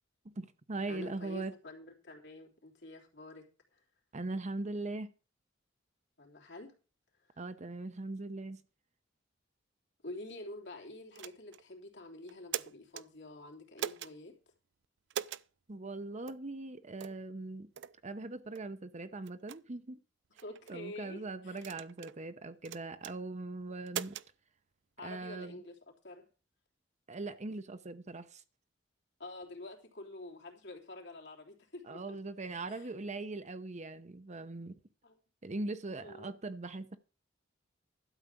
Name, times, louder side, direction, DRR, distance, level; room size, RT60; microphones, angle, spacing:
voice 1, 0.4-1.5 4.1-5.1 7.4-8.6 15.7-17.7 18.0-20.0 20.7-24.2 25.0-25.6 27.1-28.4 31.8-34.8 35.4-37.0, right 2 dB, 35° right, 0.8 m, -40 dB
voice 2, 0.9-3.8 6.2-6.8 7.2-7.4 10.0-14.4 20.4-21.6 25.0-26.2 29.2-32.2 32.7-32.9 35.0-35.1 36.0-36.3, left 2 dB, 65° left, 3.3 m, -48 dB
sound 1, 11.2-11.6 12.3-13.1 13.8-14.1 15.1-15.5 16.3-16.4 17.0-17.2 17.8-18.0 18.6-18.7 19.3-19.6 20.4-20.8 21.6-22.2 22.7-23.2 23.9-24.3, right 9 dB, 65° right, 0.4 m, -40 dB
12.0 x 5.0 x 8.3 m
head